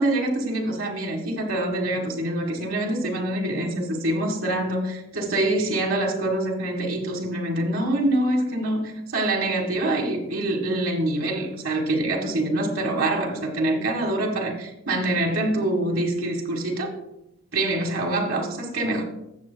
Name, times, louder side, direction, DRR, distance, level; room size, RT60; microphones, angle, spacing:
voice 1, 0.0-16.9 17.5-19.0, right 1 dB, 80° right, 0 dB, 1.6 m, -25 dB
15.5 x 6.6 x 2.2 m, 0.85 s
head